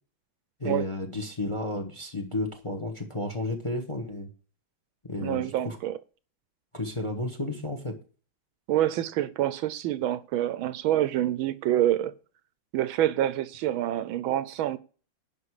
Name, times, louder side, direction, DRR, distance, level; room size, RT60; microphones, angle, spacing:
voice 1, 0.6-4.3 5.1-5.8 6.7-7.9, left 2 dB, 20° left, 1.0 m, -32 dB
voice 2, 5.2-6.0 8.7-12.1 12.7-14.8, right 12 dB, 80° right, 1.4 m, -27 dB
11.0 x 5.4 x 4.8 m
omnidirectional pair, 2.3 m